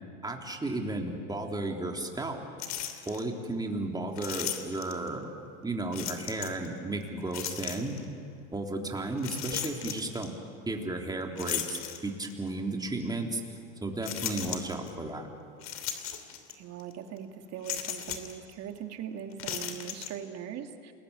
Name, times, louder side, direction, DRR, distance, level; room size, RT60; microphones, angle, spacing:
voice 1, 0.2-2.4 3.1-5.3 5.6-8.0 8.5-10.3 10.7-13.4 13.8-15.3, right 2 dB, 10° right, 2 dB, 3.6 m, -34 dB
sound 1, 2.6-3.2 4.2-5.1 5.9-6.7 7.3-8.0 9.2-10.3 11.4-12.4 13.0-13.1 14.0-14.9 15.6-16.5 16.8-16.9 17.6-18.4 19.3-20.1, left 10 dB, 50° left, 2.9 m, -36 dB
voice 2, 8.8-9.2 16.5-20.9, right 9 dB, 45° right, 6 dB, 2.5 m, -41 dB
28.5 x 21.0 x 8.8 m, 2.3 s
hypercardioid pair, 100°, 36 cm